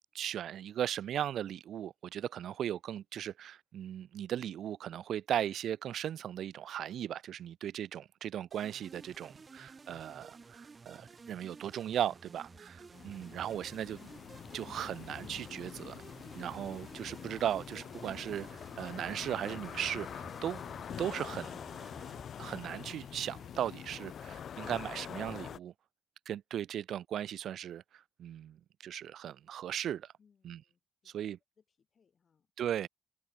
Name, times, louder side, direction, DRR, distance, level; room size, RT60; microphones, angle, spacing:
voice 1, 0.1-12.8 13.0-14.0 14.5-16.0 16.4-18.5 18.8-20.6 21.0-21.5 22.4-25.7 26.3-28.6 28.8-30.1 30.4-30.6 31.1-31.4 32.6-32.9, right 10 dB, 80° right, 0.4 m, -37 dB
sound 1, 8.5-22.2, right 4 dB, 30° right, 2.7 m, -53 dB
voice 2, 12.5-13.3 30.2-31.2 31.6-32.5, left 6 dB, 45° left, 5.4 m, -70 dB
sound 2, 12.9-25.6, left 8 dB, 65° left, 2.6 m, -45 dB
cardioid pair, 115°, 0 cm